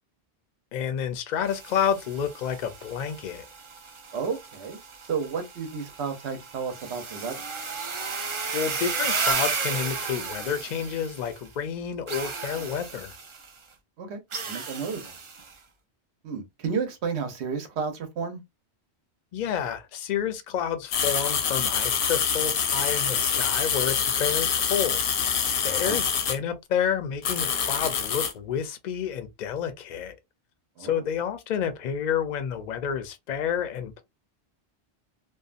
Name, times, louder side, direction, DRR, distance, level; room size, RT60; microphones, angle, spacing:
voice 1, 0.7-3.5 8.2-13.1 19.3-25.0 25.6-30.1 30.8-34.0, left 8 dB, 55° left, 0.5 m, -30 dB
sound 1, 1.4-11.5 12.1-13.5 14.3-15.5, right 4 dB, 45° right, 0.4 m, -34 dB
voice 2, 4.1-4.8 5.1-7.4 14.0-14.2 14.5-15.1 16.2-18.4 25.6-26.0 30.8-31.0, right 5 dB, 80° right, 1.0 m, -32 dB
sound 2, 20.9-26.4 27.2-28.3, left 7 dB, 80° left, 0.8 m, -25 dB
2.6 x 2.2 x 2.4 m
omnidirectional pair, 1.1 m